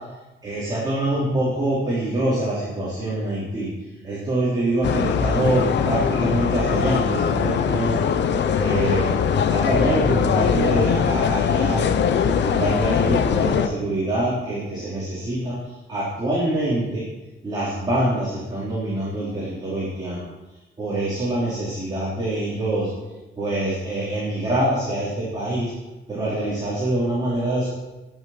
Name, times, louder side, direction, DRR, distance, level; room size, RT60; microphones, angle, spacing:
voice 1, 0.4-3.7 4.0-8.0 8.6-9.1 9.4-11.8 12.1-17.1 17.4-20.2 20.8-22.9 23.4-25.7 26.1-27.7, right 1 dB, 20° right, -8 dB, 3.9 m, -25 dB
sound 1, 4.8-13.7, left 7 dB, 60° left, 0.9 m, -21 dB
20.0 x 6.9 x 6.0 m, 1.1 s
cardioid pair, 180°, 21 cm